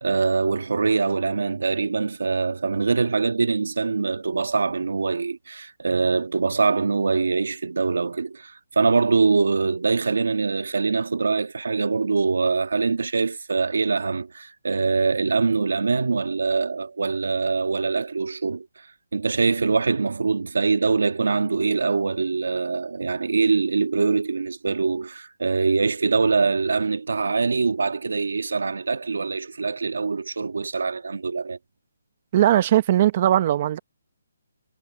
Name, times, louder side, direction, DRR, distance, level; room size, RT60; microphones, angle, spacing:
voice 1, 0.0-18.9 19.1-31.6, right 4 dB, 85° right, 1.6 m, -23 dB
voice 2, 32.3-33.8, right 12 dB, 30° right, 0.8 m, -19 dB
hypercardioid pair, 170°, 0 cm